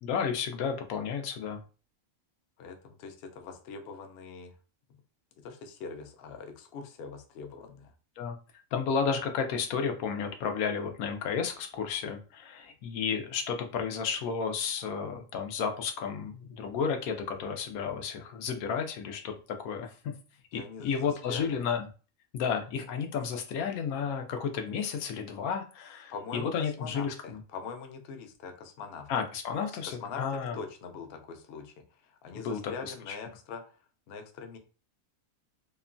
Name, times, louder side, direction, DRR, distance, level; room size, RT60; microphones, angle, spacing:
voice 1, 0.0-1.6 8.2-8.4 8.7-20.1 20.5-21.9 22.3-27.4 29.1-30.6 32.3-33.2, left 6 dB, 90° left, 5 dB, 1.0 m, -32 dB
voice 2, 2.6-4.5 5.4-7.9 20.5-21.6 26.1-29.1 29.7-31.7 32.0-33.8 34.1-34.6, left 5 dB, 65° left, 6 dB, 0.6 m, -43 dB
2.9 x 2.2 x 2.5 m, 0.35 s
omnidirectional pair, 1.5 m